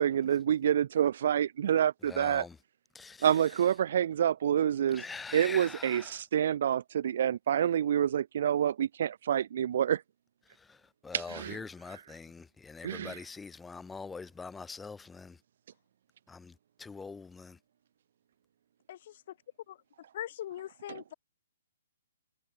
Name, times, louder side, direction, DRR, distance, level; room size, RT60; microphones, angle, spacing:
voice 1, 0.0-2.4 3.2-5.0 5.3-10.0 11.1-11.6 12.8-13.2, right 9 dB, 55° right, 0.6 m, -27 dB
voice 2, 2.0-2.6 2.9-3.3 4.9-6.2 10.6-15.4 16.3-17.6, left 4 dB, 5° left, 0.7 m, -44 dB
voice 3, 20.1-21.1, left 12 dB, 45° left, 3.1 m, -40 dB
hypercardioid pair, 160°, 0 cm